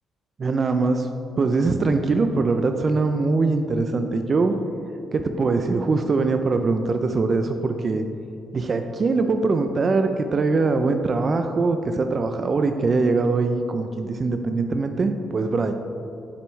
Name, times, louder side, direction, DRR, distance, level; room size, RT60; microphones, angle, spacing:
voice 1, 0.4-1.1 1.4-4.6 5.1-8.1 8.5-15.7, right 3 dB, 40° right, 6 dB, 0.4 m, -22 dB
7.7 x 6.6 x 3.1 m, 2.7 s
cardioid pair, 90°, 0 cm